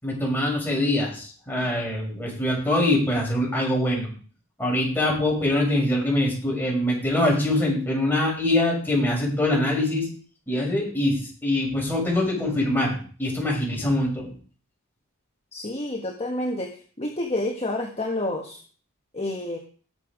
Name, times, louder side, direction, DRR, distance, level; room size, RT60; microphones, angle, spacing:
voice 1, 0.0-4.1 4.6-10.1 10.5-14.3, left 1 dB, 10° left, -2 dB, 6.1 m, -24 dB
voice 2, 15.5-16.7 17.0-18.6 19.1-19.6, left 1 dB, 30° left, 1 dB, 1.5 m, -29 dB
18.5 x 7.2 x 4.9 m, 0.42 s
head